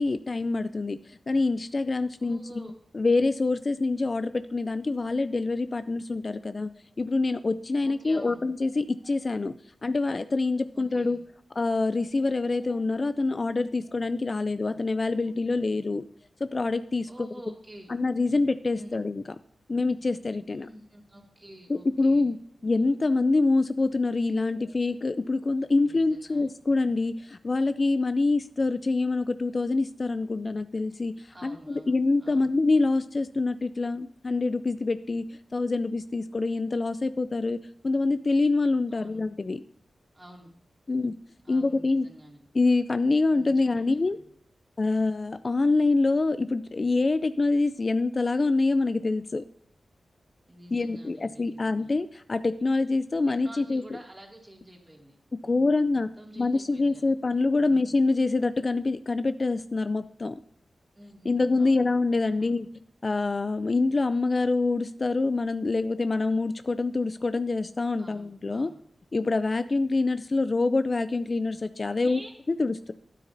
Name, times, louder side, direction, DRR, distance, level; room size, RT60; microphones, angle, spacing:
voice 1, 0.0-9.6 9.8-11.2 11.6-16.1 16.4-17.1 17.9-19.4 19.7-20.7 21.7-22.4 22.6-39.6 40.9-41.1 41.5-42.1 42.5-44.2 44.8-49.4 50.7-53.8 55.4-56.1 56.4-60.4 61.2-62.7 63.0-68.7 69.1-72.2 72.6-72.9, left 3 dB, 40° left, 12 dB, 0.3 m, -26 dB
voice 2, 2.2-2.8 7.8-8.4 10.7-11.2 17.1-17.9 18.7-19.0 20.5-22.3 25.8-26.5 31.3-32.5 38.9-39.2 40.1-40.5 41.4-42.4 43.3-44.2 50.5-51.9 53.4-57.1 57.6-57.9 61.0-61.9 62.3-62.6 68.0-68.8 71.9-72.3, right 1 dB, 20° right, 1 dB, 2.2 m, -49 dB
12.5 x 9.6 x 2.6 m, 0.68 s
wide cardioid pair, 85°, 0 cm